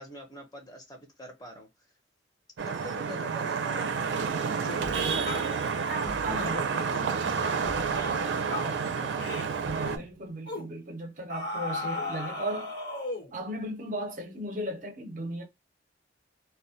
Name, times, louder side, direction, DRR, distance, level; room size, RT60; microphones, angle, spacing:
voice 1, 0.0-1.7 2.7-5.0 5.3-5.9 6.3-9.4, equal, 20° left, 0.6 m, -45 dB
Vehicle horn car horn honking / Traffic noise roadway noise, 2.6-10.0, right 5 dB, 90° right, 0.4 m, -30 dB
sound 1, 4.6-4.9 5.2-5.5 5.8-6.6 6.9-7.1 7.4-7.6 7.9-8.2 8.5-8.8 9.2-9.5 9.8-10.0 10.5-10.7 11.3-13.3, left 2 dB, 75° left, 1.1 m, -36 dB
sound 2, 4.8-5.6 6.0-6.8 7.2-7.3 7.6-8.4 9.6-10.3, equal, 60° left, 1.2 m, -45 dB
voice 2, 6.2-6.9 9.6-12.7 13.3-15.4, right 1 dB, 45° right, 0.6 m, -36 dB
2.2 x 2.1 x 2.7 m
head